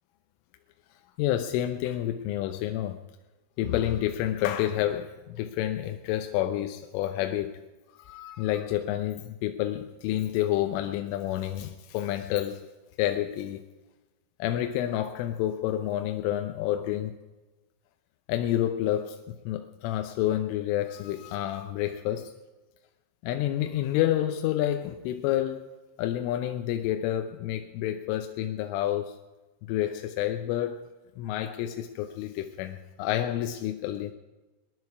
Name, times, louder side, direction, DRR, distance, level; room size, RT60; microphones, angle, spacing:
voice 1, 1.2-3.0 3.6-7.6 8.1-12.6 13.0-13.6 14.4-17.2 18.3-22.3 23.2-25.6 26.0-29.1 29.7-30.9 31.2-34.1, left 12 dB, 90° left, 6 dB, 3.4 m, -29 dB
21.5 x 10.5 x 4.8 m, 1.1 s
omnidirectional pair, 5.6 m